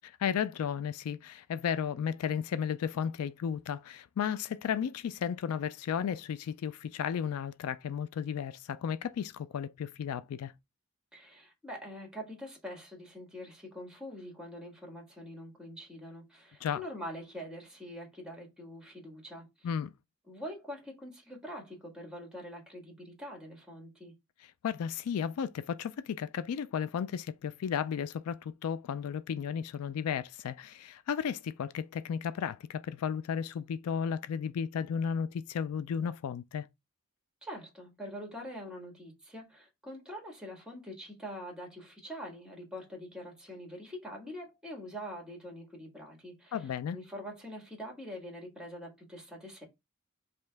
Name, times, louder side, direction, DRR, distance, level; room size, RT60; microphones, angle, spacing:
voice 1, 0.0-10.5 16.6-16.8 19.6-19.9 24.6-36.7 46.5-47.0, left 7 dB, 85° left, 0.3 m, -34 dB
voice 2, 11.1-19.7 20.3-24.1 37.4-49.7, equal, 5° right, 1.6 m, -44 dB
5.3 x 2.8 x 3.4 m
head